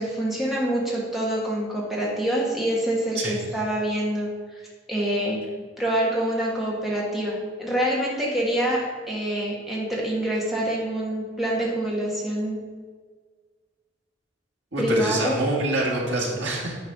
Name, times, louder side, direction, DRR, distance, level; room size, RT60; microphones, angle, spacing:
voice 1, 0.0-4.3 4.9-5.4 5.8-12.6 14.8-15.4, right 1 dB, ahead, -4 dB, 1.4 m, -26 dB
voice 2, 14.7-16.8, right 2 dB, 70° right, -3 dB, 2.1 m, -26 dB
9.7 x 4.3 x 5.4 m, 1.5 s
head